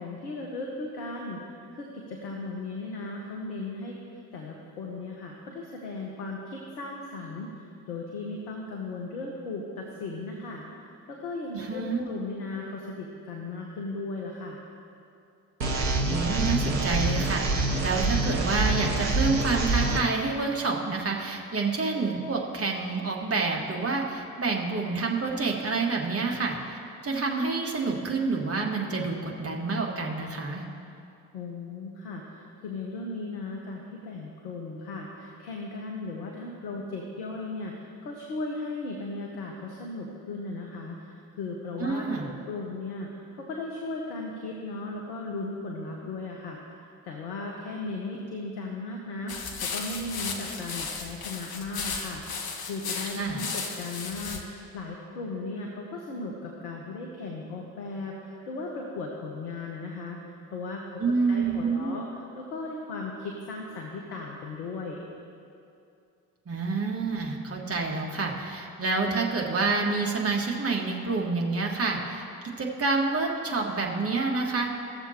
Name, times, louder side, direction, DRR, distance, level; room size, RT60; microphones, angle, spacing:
voice 1, 0.0-1.4 1.7-4.0 4.3-10.6 11.1-14.6 31.3-46.8 47.0-52.2 52.7-60.2 60.5-61.0 61.3-65.0, left 3 dB, 70° left, -1 dB, 1.1 m, -36 dB
voice 2, 11.5-12.1 16.0-30.6 41.8-42.3 53.2-53.4 61.0-61.9 66.4-72.2 72.6-74.7, right 3 dB, 30° right, 0 dB, 1.7 m, -28 dB
sound 1, 15.6-20.0, right 2 dB, 90° right, 0.7 m, -26 dB
sound 2, 49.3-54.4, left 5 dB, 45° left, 1.2 m, -35 dB
17.0 x 6.9 x 4.3 m, 2.5 s
figure-of-eight pair, 40°, 49 cm